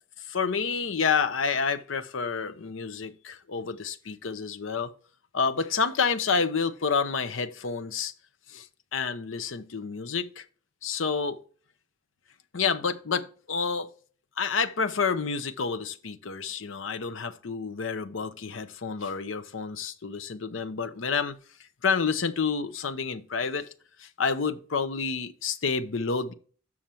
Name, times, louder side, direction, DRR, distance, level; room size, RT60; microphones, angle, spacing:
voice 1, 0.3-4.9 5.3-8.1 8.5-10.4 10.8-11.4 12.5-13.9 14.4-21.4 21.8-23.7 24.0-26.3, left 5 dB, 85° left, 0.8 m, -29 dB
7.2 x 6.3 x 4.4 m
head